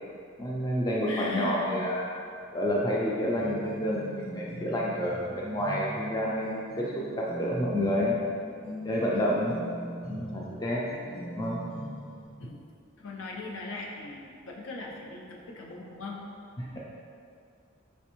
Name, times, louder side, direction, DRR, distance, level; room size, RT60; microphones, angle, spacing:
voice 1, 0.4-2.0 2.5-8.2 8.8-9.6 10.1-10.8 11.3-11.6 16.6-16.8, equal, 20° left, -4 dB, 0.3 m, -29 dB
voice 2, 1.1-1.7 9.1-9.4 12.4-12.6 13.0-16.2, left 2 dB, 75° left, -1 dB, 0.5 m, -39 dB
sound 1, 3.4-12.2, equal, 45° left, 1.5 m, -41 dB
3.4 x 3.2 x 3.0 m, 2.4 s
head